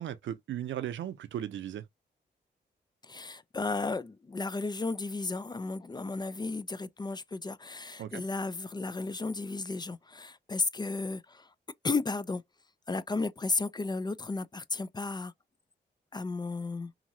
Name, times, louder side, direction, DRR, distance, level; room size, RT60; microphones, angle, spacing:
voice 1, 0.0-1.8 8.0-8.2, right 11 dB, 80° right, 0.5 m, -36 dB
voice 2, 3.0-11.5 11.8-12.4 12.9-15.3 16.1-16.9, left 3 dB, 20° left, 0.3 m, -34 dB
2.8 x 2.6 x 2.6 m
cardioid pair, 65°, 19 cm